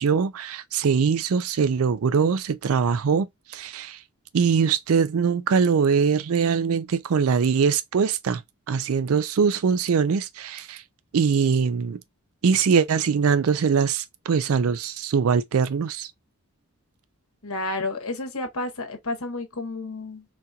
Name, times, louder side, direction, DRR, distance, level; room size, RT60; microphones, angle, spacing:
voice 1, 0.0-4.0 4.3-8.4 8.7-10.8 11.1-12.0 12.4-16.1, right 6 dB, 75° right, 0.4 m, -22 dB
voice 2, 17.4-20.2, left 2 dB, 75° left, 1.1 m, -31 dB
4.0 x 2.7 x 2.2 m
head